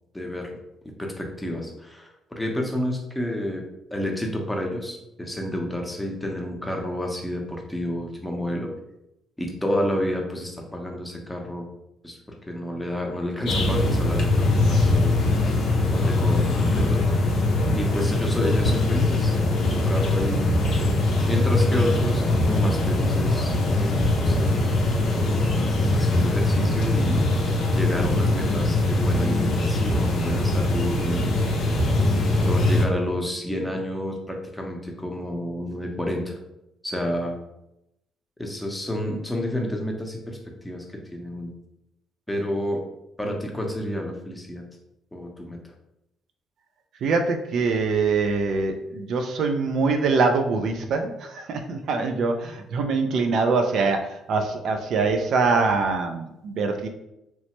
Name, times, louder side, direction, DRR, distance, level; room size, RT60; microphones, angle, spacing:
voice 1, 0.1-0.6 1.0-3.6 3.9-8.7 9.4-11.7 12.0-15.2 15.9-17.0 17.7-20.4 21.3-24.7 25.3-27.3 27.7-31.3 32.1-36.4 36.8-37.4 38.4-41.5 42.3-42.8 43.2-44.6 45.1-45.7, left 1 dB, 10° left, 1 dB, 0.6 m, -30 dB
sound 1, 13.5-32.8, left 2 dB, 65° left, 0.5 m, -22 dB
voice 2, 47.0-56.9, right 4 dB, 70° right, 5 dB, 0.3 m, -24 dB
2.9 x 2.0 x 2.9 m, 0.86 s
supercardioid pair, 65°, 0 cm